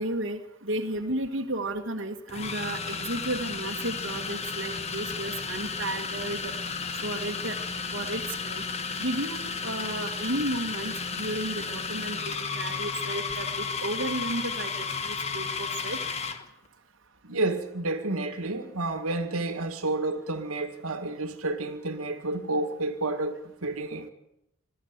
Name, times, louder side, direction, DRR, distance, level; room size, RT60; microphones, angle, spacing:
voice 1, 0.0-6.5 7.0-7.6 7.9-8.6 9.0-16.0, right 1 dB, 60° right, 1.7 m, -33 dB
sound 1, 1.0-1.1 2.3-16.5, left 5 dB, 30° left, 1.3 m, -33 dB
voice 2, 17.2-24.1, right 2 dB, 85° right, 2.0 m, -30 dB
21.5 x 14.0 x 9.5 m
head